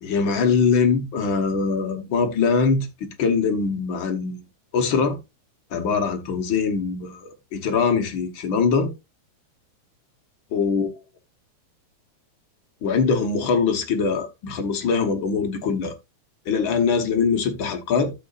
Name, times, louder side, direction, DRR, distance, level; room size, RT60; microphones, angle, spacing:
voice 1, 0.0-2.9 3.2-4.4 4.7-5.2 5.7-8.9 10.5-10.9 12.8-15.9 16.5-18.1, left 5 dB, 55° left, 1.4 m, -22 dB
12.5 x 7.5 x 2.4 m
omnidirectional pair, 3.6 m